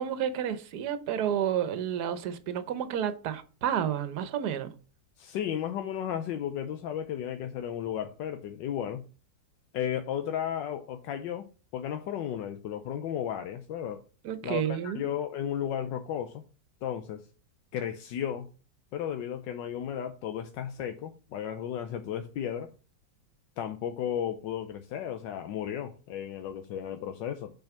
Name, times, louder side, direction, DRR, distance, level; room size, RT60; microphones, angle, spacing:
voice 1, 0.0-4.7 14.2-15.1, right 9 dB, 65° right, 1.4 m, -30 dB
voice 2, 5.2-9.0 9.7-11.5 11.7-14.0 14.4-16.4 16.8-17.2 17.7-18.5 18.9-22.7 23.6-27.5, left 9 dB, 80° left, 1.4 m, -34 dB
7.2 x 5.1 x 6.0 m
omnidirectional pair, 1.9 m